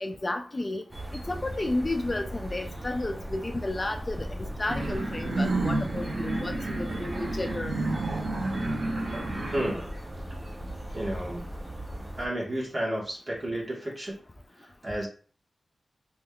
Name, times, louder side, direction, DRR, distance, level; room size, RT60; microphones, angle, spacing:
voice 1, 0.0-0.8 1.3-7.7, left 2 dB, 30° left, 5 dB, 0.3 m, -32 dB
sound 1, 0.9-12.3, right 1 dB, 15° right, 0.7 m, -38 dB
sound 2, 4.7-9.7, right 2 dB, 70° right, 0.9 m, -30 dB
voice 2, 9.5-10.0 10.9-11.4 12.2-14.1 14.6-15.1, right 1 dB, 40° right, -3 dB, 1.3 m, -32 dB
3.5 x 3.0 x 2.3 m, 0.41 s
wide cardioid pair, 95°, 0 cm